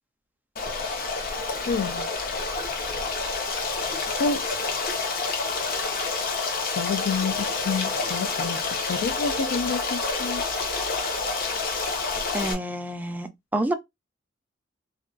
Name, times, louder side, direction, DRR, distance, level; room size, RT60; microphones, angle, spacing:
Stream, 0.6-12.5, left 4 dB, 50° left, 0.7 m, -28 dB
voice 1, 1.7-2.1 4.2-4.4 6.6-8.6 8.9-10.4, left 4 dB, 90° left, 0.4 m, -28 dB
voice 2, 12.3-13.7, right 1 dB, 10° right, 0.3 m, -28 dB
2.3 x 2.2 x 3.7 m
head